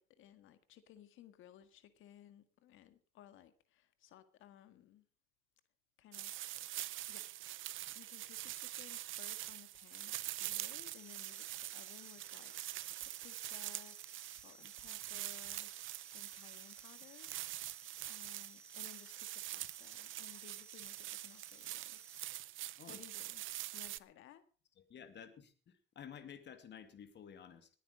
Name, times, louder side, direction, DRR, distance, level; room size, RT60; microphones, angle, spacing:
voice 1, 0.0-5.1 6.0-6.5 7.1-7.4 7.9-17.7 18.1-22.0 22.9-24.4, left 11 dB, 85° left, 1.8 m, -60 dB
sound 1, 6.1-24.0, right 15 dB, 80° right, 0.6 m, -45 dB
sound 2, 10.9-22.3, right 1 dB, 5° left, 3.5 m, -62 dB
voice 2, 24.8-27.7, left 8 dB, 60° left, 2.5 m, -53 dB
20.5 x 9.3 x 5.2 m
cardioid pair, 90°, 20 cm